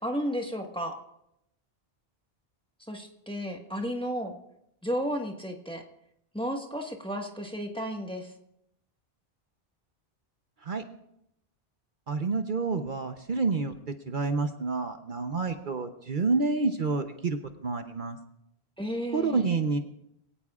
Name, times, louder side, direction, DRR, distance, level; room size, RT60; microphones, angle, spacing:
voice 1, 0.0-1.0 2.9-4.4 4.8-5.8 6.3-8.3 18.8-19.4, equal, 5° left, 2 dB, 1.4 m, -33 dB
voice 2, 12.1-18.2 19.1-19.8, right 4 dB, 55° right, 6 dB, 1.0 m, -29 dB
24.0 x 17.5 x 2.4 m, 0.80 s
omnidirectional pair, 1.0 m